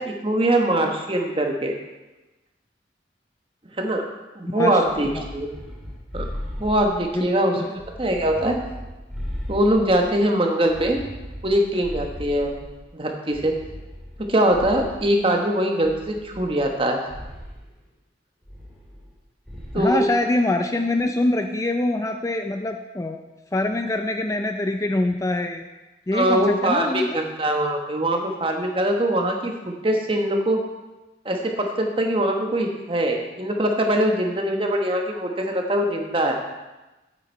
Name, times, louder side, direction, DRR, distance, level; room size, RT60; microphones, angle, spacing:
voice 1, 0.1-1.8 3.8-4.0 4.4-5.5 6.1-6.2 6.6-8.6 9.5-11.0 11.4-12.6 12.9-13.5 14.3-17.0 19.7-20.0 26.1-29.5 29.8-30.6 31.2-36.3, right 1 dB, 30° right, 2 dB, 1.2 m, -22 dB
voice 2, 4.5-4.8 5.1-5.3 7.1-7.7 19.7-23.2 23.5-25.6 26.1-27.2, left 2 dB, 20° left, 5 dB, 0.4 m, -24 dB
sound 1, 4.8-7.3 7.8-10.2 10.7-12.8 13.3-15.2 15.8-16.8 17.1-17.6 18.5-19.2 19.5-19.9, equal, ahead, 2.0 m, -37 dB
8.9 x 8.8 x 4.5 m, 1.1 s
head